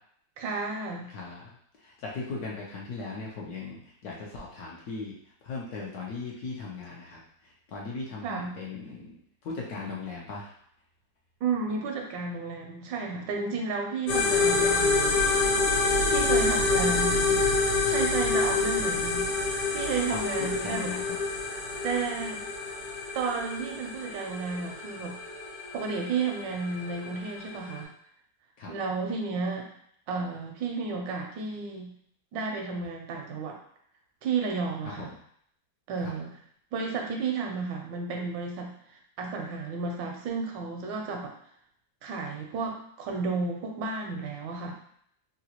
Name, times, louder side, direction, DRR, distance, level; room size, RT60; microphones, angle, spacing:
voice 1, 0.4-1.1 8.2-8.5 11.4-15.2 16.1-17.4 17.8-20.9 21.8-22.4 23.1-25.2 25.7-27.9 28.7-29.7 30.1-31.9 32.3-33.6 34.2-35.1 35.9-36.4 36.7-38.7 39.2-41.3 42.0-44.8, right 4 dB, 80° right, 2 dB, 1.3 m, -32 dB
voice 2, 1.1-1.4 1.8-5.1 5.4-7.2 7.7-9.1 9.4-10.5 16.8-17.2 20.1-20.2 20.6-21.2 28.6-28.7 35.0-35.1 36.0-36.1, left 4 dB, 65° left, -3 dB, 1.1 m, -38 dB
sound 1, 14.1-27.8, left 3 dB, 80° left, 1.5 m, -27 dB
3.8 x 2.3 x 2.8 m, 0.66 s
omnidirectional pair, 2.0 m